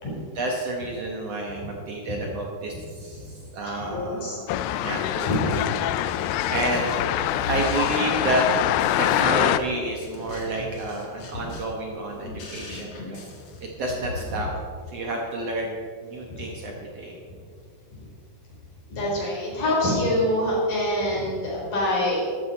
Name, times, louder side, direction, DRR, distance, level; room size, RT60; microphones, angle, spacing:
voice 1, 0.4-4.5 4.8-5.8 6.2-6.9 7.5-8.5 9.0-13.2 13.6-14.5 14.9-17.2, right 2 dB, 60° right, 0 dB, 1.9 m, -30 dB
voice 2, 3.7-4.4 5.3-5.6 6.5-6.6 11.4-11.5 16.3-16.4 17.9-18.0 18.9-22.3, left 1 dB, 70° left, -4 dB, 5.5 m, -25 dB
sound 1, 4.5-9.6, left 13 dB, 85° left, 2.3 m, -24 dB
sound 2, 4.9-14.5, left 3 dB, 50° left, 2.4 m, -39 dB
13.5 x 12.5 x 4.2 m, 2.1 s
omnidirectional pair, 4.0 m